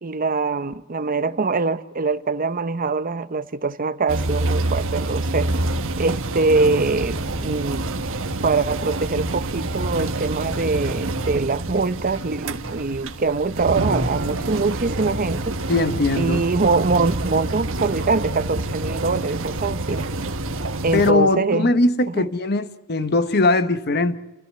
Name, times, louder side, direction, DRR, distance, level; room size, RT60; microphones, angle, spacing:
voice 1, 0.0-5.5 6.0-7.9 8.4-15.6 16.1-20.1 20.8-21.7 22.1-22.3, right 4 dB, 40° right, 0.7 m, -23 dB
sound 1, 4.1-21.1, right 2 dB, 65° right, 1.3 m, -27 dB
voice 2, 15.7-16.4 20.9-24.2, left 2 dB, 50° left, 1.1 m, -20 dB
29.5 x 14.0 x 9.5 m
head